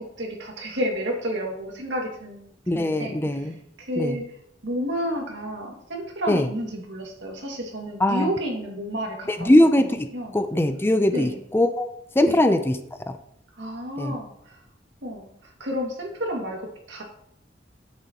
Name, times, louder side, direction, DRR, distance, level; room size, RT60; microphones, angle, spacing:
voice 1, 0.0-4.4 4.6-9.5 10.1-10.4 11.1-11.4 12.3-12.4 13.6-14.6 15.0-17.0, equal, 80° right, 0 dB, 2.2 m, -31 dB
voice 2, 2.7-3.5 4.0-4.2 6.3-6.5 8.0-8.3 9.3-11.9 12.2-12.8 13.1-13.2 14.0-14.2, left 1 dB, 15° left, 9 dB, 0.5 m, -21 dB
10.5 x 7.6 x 3.0 m, 0.73 s
head